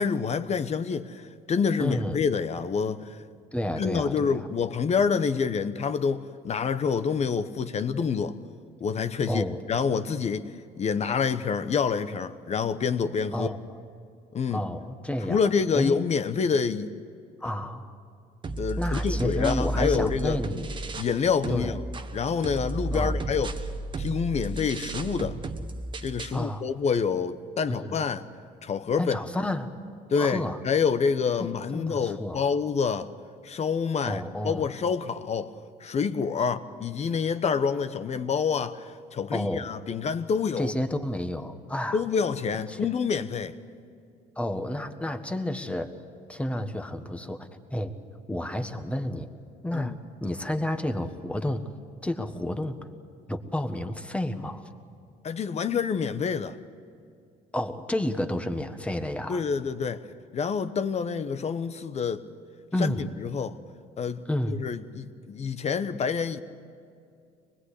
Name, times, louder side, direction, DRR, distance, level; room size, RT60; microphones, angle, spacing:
voice 1, 0.0-3.2 3.8-8.4 8.8-13.5 14.3-14.6 15.3-16.9 18.6-20.4 20.9-21.9 22.1-23.5 24.0-25.4 26.0-28.3 28.6-29.2 30.1-33.1 33.4-40.7 41.9-43.6 49.7-50.0 55.2-56.6 59.3-60.1 60.3-62.2 62.8-63.6 64.0-66.4, left 6 dB, 40° left, 1.0 m, -27 dB
voice 2, 1.8-2.2 3.5-4.5 9.3-9.6 13.3-13.6 14.5-15.4 15.7-16.0 17.4-17.9 18.8-20.7 21.5-21.7 22.9-23.2 26.3-26.6 27.7-28.0 29.0-29.7 30.2-30.6 31.4-31.5 31.7-32.5 34.0-34.6 39.3-39.7 40.6-42.0 42.7-42.8 44.4-46.0 46.3-47.9 48.3-49.3 49.6-49.9 50.2-51.6 52.0-52.8 53.3-54.7 57.5-59.4 62.7-63.0 64.3-64.6, left 1 dB, 5° left, 1.6 m, -30 dB
sound 1, 18.4-21.2 21.4-26.4, right 2 dB, 30° right, 1.3 m, -33 dB
24.5 x 20.5 x 8.4 m
cardioid pair, 110°, 17 cm